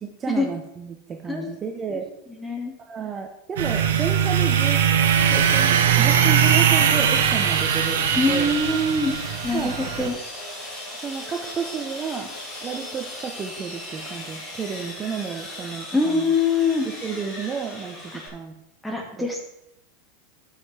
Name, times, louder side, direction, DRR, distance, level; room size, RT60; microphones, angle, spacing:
voice 1, 0.0-2.1 2.9-4.8 5.2-8.5 9.5-9.8 10.9-16.3 16.8-18.5 19.2-19.3, right 6 dB, 25° right, 4 dB, 0.9 m, -31 dB
voice 2, 2.4-2.7 8.2-9.1 9.4-10.1 15.9-16.9 18.1-18.2 18.8-19.4, left 3 dB, 5° left, 1 dB, 2.0 m, -23 dB
sound 1, 3.6-10.1, right 8 dB, 80° right, 1.1 m, -20 dB
Sawing, 6.0-18.3, left 1 dB, 25° left, 3.3 m, -37 dB
12.5 x 6.7 x 3.4 m, 0.84 s
hypercardioid pair, 115°, 0 cm